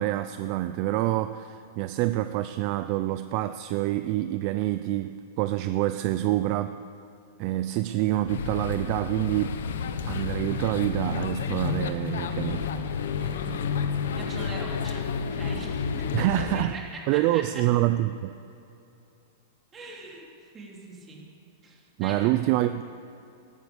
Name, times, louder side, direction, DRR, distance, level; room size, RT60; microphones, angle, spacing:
voice 1, 0.0-6.8 7.4-9.6 10.1-12.7 16.1-16.8 17.1-18.3 22.0-22.8, right 15 dB, 40° right, 11 dB, 0.4 m, -26 dB
sound 1, 8.3-16.7, left 6 dB, 80° left, 1.1 m, -30 dB
voice 2, 13.2-13.8 14.1-16.3 16.5-17.6 19.7-21.2 21.6-22.3, right 3 dB, 20° right, -2 dB, 3.1 m, -42 dB
14.0 x 13.5 x 7.1 m, 2.8 s
supercardioid pair, 155°, 0 cm